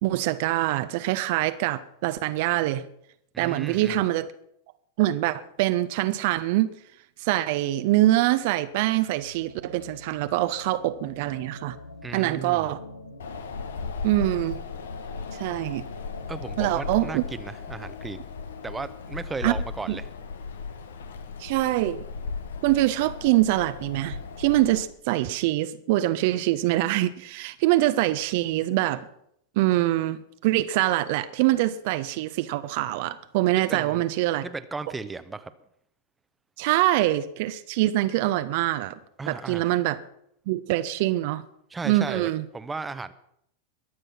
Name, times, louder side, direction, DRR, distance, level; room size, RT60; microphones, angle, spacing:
voice 1, 0.0-2.8 3.4-4.3 5.0-6.7 7.2-11.8 12.1-12.8 14.0-14.6 15.4-15.8 16.6-17.2 19.4-19.5 19.9-20.0 21.4-22.0 22.6-29.1 29.6-34.4 36.6-39.0 39.3-40.0 40.5-41.4 41.8-42.4, right 16 dB, 50° right, 12 dB, 0.7 m, -24 dB
voice 2, 3.3-4.0 12.0-12.7 16.3-18.2 18.6-20.1 33.7-34.1 34.4-35.5 39.2-39.8 41.7-43.1, right 4 dB, 10° right, 11 dB, 0.9 m, -35 dB
sound 1, 8.1-17.1, left 1 dB, 80° left, 1.3 m, -46 dB
Wind, 13.2-24.8, left 5 dB, 65° left, 1.2 m, -36 dB
22.0 x 7.9 x 5.8 m, 0.72 s
figure-of-eight pair, 90°, 0 cm